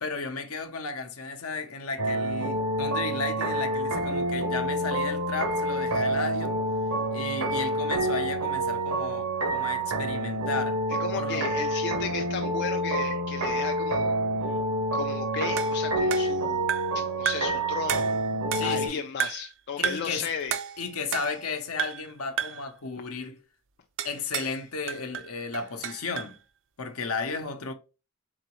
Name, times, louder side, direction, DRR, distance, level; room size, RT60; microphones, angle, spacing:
voice 1, 0.0-6.6 7.1-10.8 11.1-11.5 18.5-19.0 19.8-20.3 20.8-23.4 24.0-26.4 26.8-27.7, left 4 dB, 70° left, 0.8 m, -34 dB
sound 1, 2.0-18.9, right 1 dB, 85° right, 0.9 m, -28 dB
voice 2, 11.0-14.6 14.9-16.7 16.9-18.1 18.6-20.6, left 6 dB, 50° left, 0.4 m, -34 dB
sound 2, 15.6-17.0 17.3-17.6 17.9-18.9 19.2-19.5 19.8-20.2 20.5-21.5 21.8-22.1 22.4-22.7 24.0-24.6 24.9-26.4, right 8 dB, 60° right, 0.5 m, -32 dB
3.9 x 3.8 x 3.0 m
head